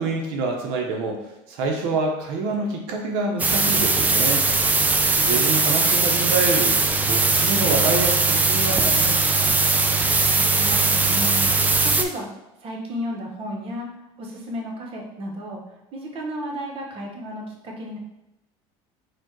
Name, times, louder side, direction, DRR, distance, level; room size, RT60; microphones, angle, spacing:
voice 1, 0.0-4.5 5.0-9.6, right 3 dB, 80° right, 1 dB, 0.9 m, -27 dB
sound 1, 3.4-12.0, right 3 dB, 10° right, 0.3 m, -20 dB
voice 2, 10.3-11.4 11.8-12.3 12.6-13.9 14.2-15.6 15.9-18.0, equal, 45° right, 0 dB, 1.1 m, -33 dB
4.5 x 2.4 x 4.5 m, 0.92 s
cardioid pair, 125°, 13 cm